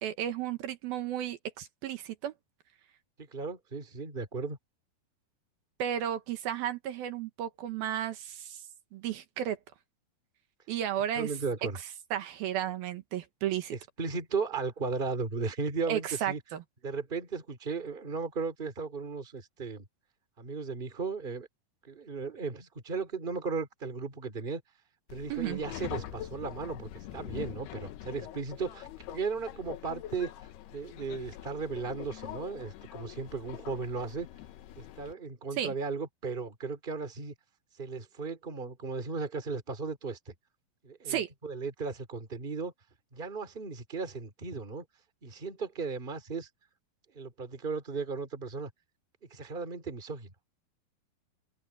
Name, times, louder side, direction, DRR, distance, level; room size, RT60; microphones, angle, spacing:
voice 1, 0.0-2.3 5.8-8.6 8.9-9.6 10.7-11.3 12.1-13.8 15.9-16.6 25.3-25.6 35.6-35.7 41.1-41.3, right 10 dB, 75° right, 3.0 m, -33 dB
voice 2, 3.2-4.6 11.1-11.8 13.7-16.4 16.8-19.8 20.4-21.5 21.8-24.6 25.1-30.3 30.7-34.3 34.8-37.3 37.8-40.3 40.8-42.7 43.1-44.8 45.2-46.5 47.1-48.7 49.3-50.3, right 4 dB, 15° right, 2.4 m, -36 dB
Subway metro underground, 25.1-35.1, left 12 dB, 90° left, 3.2 m, -44 dB
open air
omnidirectional pair, 4.5 m